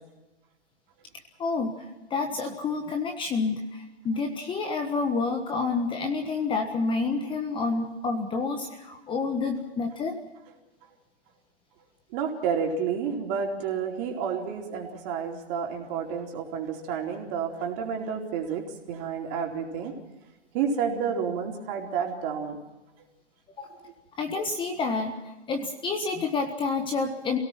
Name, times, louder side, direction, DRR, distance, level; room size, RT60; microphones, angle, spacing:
voice 1, 1.4-1.8 2.1-10.2 23.6-23.7 24.2-25.1 25.5-27.4, left 4 dB, 15° left, 5 dB, 1.4 m, -28 dB
voice 2, 12.1-19.9 20.5-22.6, right 6 dB, 35° right, 1 dB, 4.2 m, -30 dB
28.0 x 17.5 x 6.0 m, 1.1 s
hypercardioid pair, 135°, 35 cm